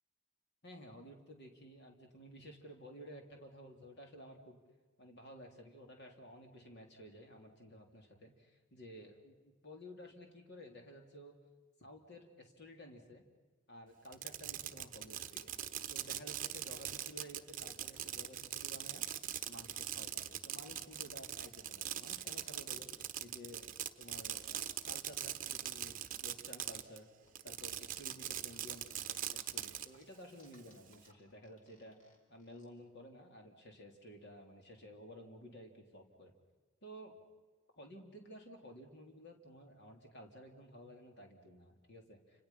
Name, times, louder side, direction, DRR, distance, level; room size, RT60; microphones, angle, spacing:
voice 1, 0.6-4.6 5.0-11.3 11.8-13.2 13.7-15.5 15.9-19.0 19.5-22.9 23.2-23.6 24.0-27.1 27.4-32.0 32.3-36.3 36.8-37.2 37.8-42.4, equal, 55° left, 2 dB, 3.6 m, -54 dB
Fireworks, 14.0-27.0 27.3-29.9, right 11 dB, 40° right, 1.1 m, -42 dB
sound 1, 27.2-29.1 29.5-32.7, left 1 dB, 40° left, 5.4 m, -68 dB
29.5 x 27.0 x 5.8 m, 1.3 s
head